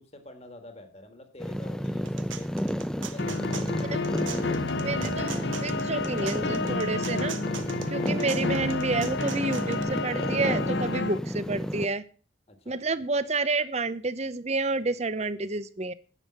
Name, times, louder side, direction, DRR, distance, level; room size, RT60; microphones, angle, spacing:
voice 1, 0.0-2.5 3.0-3.7 12.5-12.8, left 1 dB, 30° left, 7 dB, 1.7 m, -47 dB
sound 1, 1.4-11.9, equal, 5° left, 0.6 m, -32 dB
sound 2, 1.8-9.8, right 8 dB, 75° right, 1.1 m, -42 dB
sound 3, 3.2-11.2, left 3 dB, 60° left, 0.7 m, -31 dB
voice 2, 4.8-7.4 7.9-12.0 12.7-15.9, right 3 dB, 35° right, 15 dB, 0.7 m, -29 dB
9.9 x 7.1 x 7.7 m, 0.38 s
head